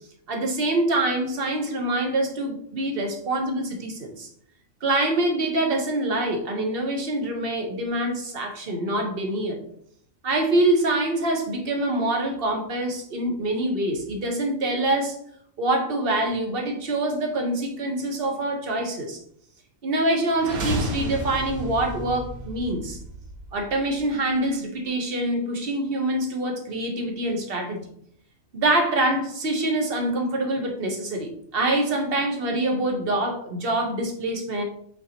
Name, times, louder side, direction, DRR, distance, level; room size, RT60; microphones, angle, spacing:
voice 1, 0.3-4.3 4.8-9.6 10.2-15.2 15.6-19.2 19.8-23.0 23.5-27.8 28.5-34.6, right 1 dB, 45° right, 3 dB, 1.2 m, -25 dB
sound 1, 20.3-24.3, right 1 dB, 80° right, 1.5 m, -33 dB
8.1 x 3.9 x 3.0 m, 0.67 s
omnidirectional pair, 1.5 m